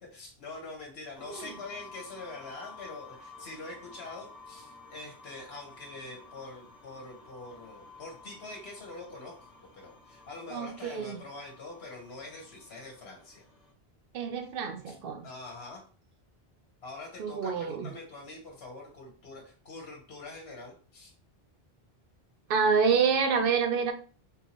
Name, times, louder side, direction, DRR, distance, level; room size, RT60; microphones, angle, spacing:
voice 1, 0.0-9.5 9.7-13.4 14.9-15.0 15.2-15.8 16.8-21.1, left 2 dB, 75° left, 1.1 m, -44 dB
sound 1, 1.1-13.7, left 4 dB, 50° left, 1.1 m, -52 dB
voice 2, 10.5-11.2 14.1-15.3 17.2-17.9 22.5-23.9, right 6 dB, 65° right, 0.7 m, -27 dB
3.6 x 2.6 x 2.9 m
omnidirectional pair, 1.0 m